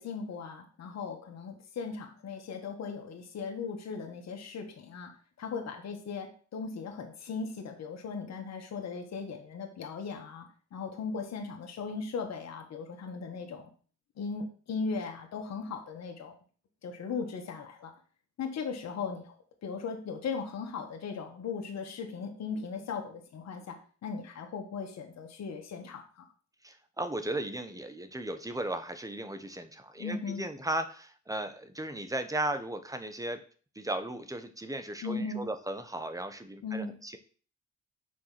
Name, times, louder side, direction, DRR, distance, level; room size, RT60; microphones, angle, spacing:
voice 1, 0.0-13.7 14.2-16.3 16.8-17.9 18.4-19.4 19.6-26.2 30.0-30.4 35.0-35.4 36.6-37.0, left 5 dB, 60° left, 3 dB, 1.7 m, -38 dB
voice 2, 26.6-33.4 33.7-37.2, right 1 dB, 10° right, 9 dB, 1.1 m, -36 dB
6.3 x 4.8 x 5.9 m, 0.41 s
cardioid pair, 90°, 30 cm